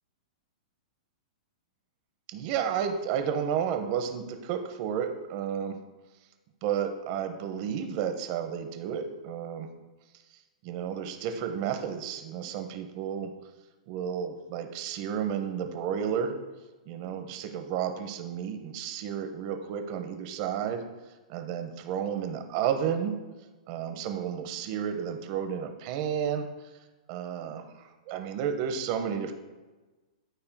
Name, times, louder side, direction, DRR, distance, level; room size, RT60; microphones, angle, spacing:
voice 1, 2.3-5.7 6.6-9.7 10.6-13.3 13.9-16.4 16.9-20.8 21.3-23.2 23.7-26.5 27.1-29.3, right 8 dB, 45° right, 6 dB, 0.8 m, -32 dB
12.5 x 4.4 x 2.2 m, 1.2 s
hypercardioid pair, 140°, 4 cm